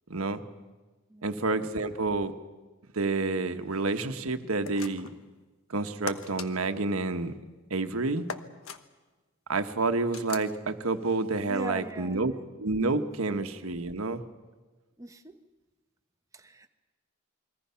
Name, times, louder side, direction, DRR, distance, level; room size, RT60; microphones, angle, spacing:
voice 1, 0.1-0.4 1.2-2.3 2.9-5.1 5.7-7.4 7.7-8.3 9.5-14.2, right 3 dB, 90° right, 8 dB, 1.2 m, -29 dB
sound 1, 4.6-5.2 6.1-6.5 8.3-8.8 10.1-10.5, left 5 dB, 80° left, 1.1 m, -39 dB
voice 2, 11.5-12.4 15.0-15.4 16.3-16.7, right 2 dB, 15° right, 7 dB, 1.0 m, -41 dB
29.0 x 22.0 x 5.7 m, 1.3 s
head